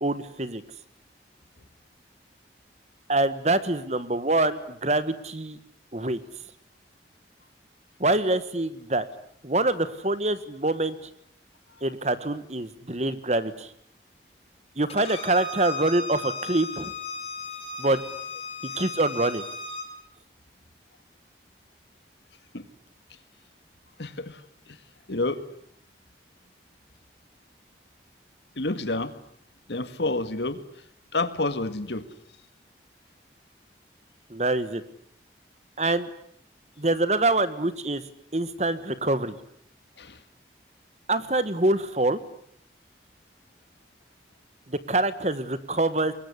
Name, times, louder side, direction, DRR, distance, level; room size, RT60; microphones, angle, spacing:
voice 1, 0.0-0.6 3.1-5.6 5.9-6.2 8.0-9.1 9.4-11.1 11.8-13.7 14.7-16.9 17.8-18.0 18.8-19.4 34.3-34.8 35.8-36.1 36.8-38.0 38.3-39.4 41.1-42.2 44.7-46.1, right 2 dB, 40° right, 14 dB, 1.5 m, -25 dB
Bowed string instrument, 14.9-19.9, left 3 dB, 35° left, 6.0 m, -36 dB
voice 2, 24.0-24.4 24.7-24.8 25.1-25.4 28.6-29.1 29.7-30.6 31.1-32.1 40.0-40.2, left 2 dB, 75° left, 12 dB, 1.9 m, -29 dB
25.5 x 21.5 x 9.9 m, 0.67 s
head